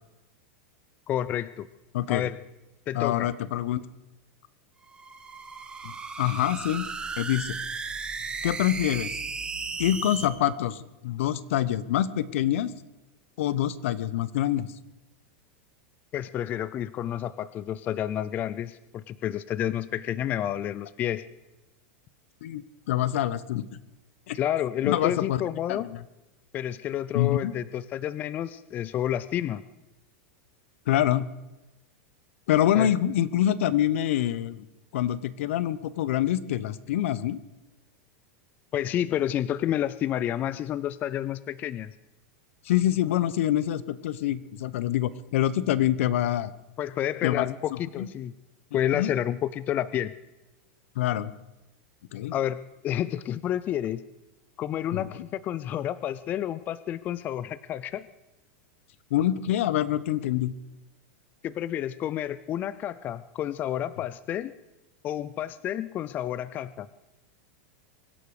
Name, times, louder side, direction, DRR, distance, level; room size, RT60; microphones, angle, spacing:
voice 1, 1.1-1.7 2.1-2.4 2.9-3.3 16.1-21.2 24.3-25.9 26.5-29.6 32.7-32.9 38.7-41.9 46.8-48.3 48.7-50.1 52.3-54.0 54.6-58.1 61.4-64.5 65.0-66.9, left 11 dB, 25° left, 17 dB, 0.4 m, -30 dB
voice 2, 1.9-2.3 2.9-3.8 5.8-6.9 7.2-7.6 8.4-9.1 9.8-12.7 13.4-14.7 22.4-23.6 24.3-24.4 24.8-25.4 25.7-26.0 27.1-27.5 30.9-31.3 32.5-34.7 34.9-37.4 42.6-46.5 47.2-47.5 48.0-48.1 48.9-49.1 51.0-51.3 52.1-52.4 54.9-55.0 59.1-60.5, left 12 dB, 70° left, 18 dB, 0.9 m, -26 dB
sound 1, 4.8-10.3, right 4 dB, 10° right, 1.2 m, -35 dB
24.0 x 11.5 x 4.9 m, 1.0 s
supercardioid pair, 160°, 7 cm